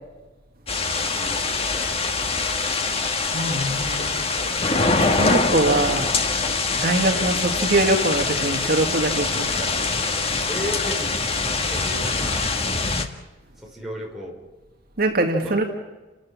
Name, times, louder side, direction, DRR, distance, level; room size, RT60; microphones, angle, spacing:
sound 1, 0.7-13.1, left 3 dB, 30° left, 1.7 m, -24 dB
voice 1, 0.8-2.9 10.5-12.5 13.6-14.4 15.4-15.6, equal, ahead, -3 dB, 6.1 m, -36 dB
voice 2, 3.3-4.4 4.7-6.1 6.7-9.7 15.0-15.6, right 2 dB, 50° right, 2 dB, 2.1 m, -23 dB
29.5 x 13.5 x 8.7 m, 1.2 s
head